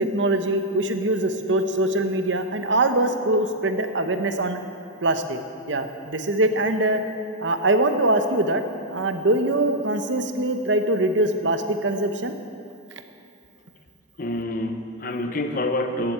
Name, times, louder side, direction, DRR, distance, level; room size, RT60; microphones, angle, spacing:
voice 1, 0.0-4.6 5.0-5.4 5.7-7.0 7.4-8.6 8.9-12.3, right 1 dB, 65° right, 7 dB, 1.0 m, -23 dB
voice 2, 14.2-16.1, left 1 dB, 45° left, 6 dB, 0.8 m, -27 dB
15.0 x 7.7 x 8.7 m, 2.5 s
head